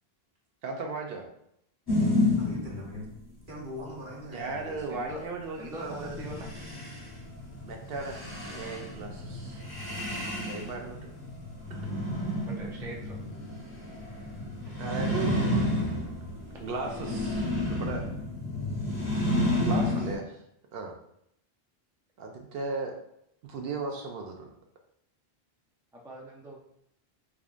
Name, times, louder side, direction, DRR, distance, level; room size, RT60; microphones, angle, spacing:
voice 1, 0.6-1.3 4.3-6.2 7.6-8.2 8.4-9.6 10.4-11.1 11.7-11.9 14.8-15.4 16.6-18.1 19.6-20.2 20.7-20.9 22.2-22.9 23.4-24.5, right 3 dB, 70° right, 2 dB, 0.7 m, -36 dB
sound 1, 1.9-3.1 5.7-20.1, left 1 dB, 25° left, 0.8 m, -31 dB
voice 2, 2.3-3.1 3.5-5.3, left 1 dB, 55° right, -3 dB, 1.1 m, -42 dB
voice 3, 4.9-5.2 5.6-6.5 12.5-13.2 19.8-20.0 25.9-26.7, equal, 5° right, -2 dB, 0.4 m, -42 dB
3.6 x 3.5 x 2.4 m, 0.75 s
omnidirectional pair, 1.0 m